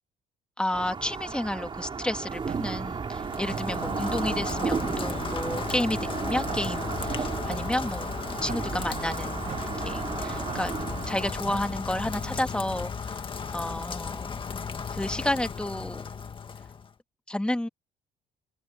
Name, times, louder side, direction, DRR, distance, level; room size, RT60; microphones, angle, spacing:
voice 1, 0.6-9.5 9.8-13.2 13.5-14.4 14.9-16.1 17.3-17.7, left 1 dB, 5° left, 2.0 m, -31 dB
sound 1, 0.7-11.3, right 5 dB, 30° right, 3.6 m, -34 dB
sound 2, 2.3-12.4, right 8 dB, 50° right, 5.8 m, -42 dB
Rain, 3.1-16.9, left 5 dB, 30° left, 1.9 m, -35 dB
cardioid pair, 110°, 17 cm